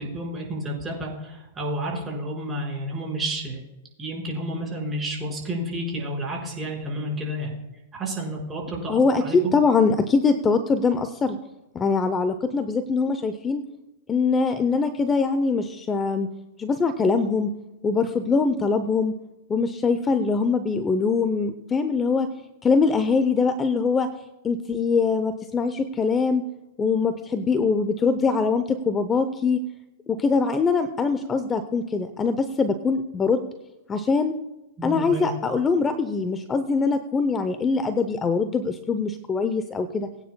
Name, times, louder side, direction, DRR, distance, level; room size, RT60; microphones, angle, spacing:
voice 1, 0.0-3.6 4.0-7.5 7.9-9.4 34.8-35.3, right 1 dB, 15° right, -2 dB, 4.9 m, -30 dB
voice 2, 8.9-11.4 11.7-13.6 14.1-16.3 16.6-17.5 17.8-19.1 19.5-22.3 22.6-24.1 24.4-26.4 26.8-29.6 30.1-33.5 33.9-34.3 34.8-40.1, left 4 dB, 20° left, 10 dB, 0.7 m, -23 dB
21.5 x 9.4 x 2.2 m, 0.96 s
hypercardioid pair, 130°, 0 cm